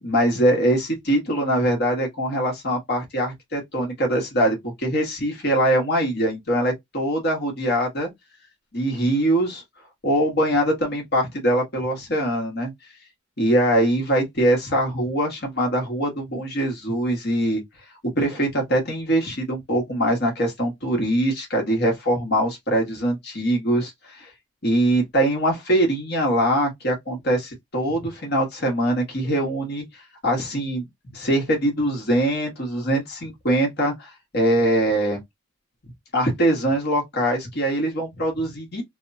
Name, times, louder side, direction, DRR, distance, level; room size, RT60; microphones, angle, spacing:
voice 1, 0.0-8.1 8.7-9.6 10.0-12.7 13.4-17.6 18.0-24.3 24.6-35.2 36.1-38.8, right 1 dB, 50° left, 1.4 m, -23 dB
3.4 x 2.1 x 2.6 m
head